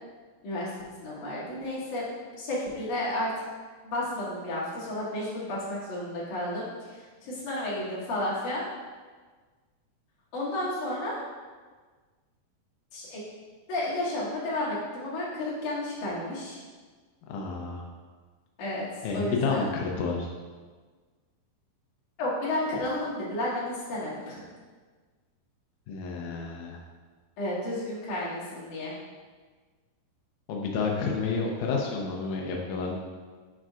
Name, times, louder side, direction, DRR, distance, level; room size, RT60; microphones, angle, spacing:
voice 1, 1.0-2.1 2.4-3.3 3.8-8.6 10.3-11.2 12.9-13.2 13.7-16.6 18.6-18.8 19.1-19.6 22.2-24.4 27.4-28.9, left 1 dB, 60° left, -8 dB, 3.1 m, -32 dB
voice 2, 17.3-17.9 19.0-20.3 25.9-26.8 30.5-32.9, left 4 dB, 80° left, -1 dB, 1.8 m, -30 dB
7.4 x 6.7 x 2.4 m, 1.4 s
omnidirectional pair, 4.2 m